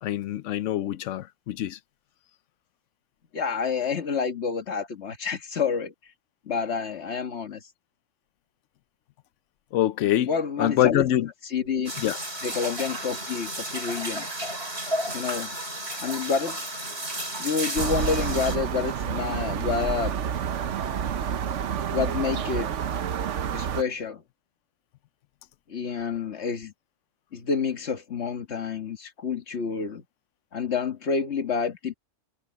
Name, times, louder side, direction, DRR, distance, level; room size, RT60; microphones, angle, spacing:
voice 1, 0.0-1.8 9.7-10.3 10.6-11.3 12.0-12.2, left 12 dB, 90° left, 1.0 m, -24 dB
voice 2, 3.3-5.9 6.5-7.7 10.3-11.1 11.4-11.9 12.4-14.3 15.1-15.5 16.0-16.6 17.4-20.1 21.9-22.7 23.5-24.2 25.7-26.7 27.3-30.0 30.5-31.9, left 5 dB, 65° left, 1.8 m, -28 dB
sound 1, 11.9-18.6, right 1 dB, 60° right, 5.8 m, -33 dB
sound 2, 17.8-23.8, right 8 dB, 80° right, 1.2 m, -29 dB
omnidirectional pair, 1.2 m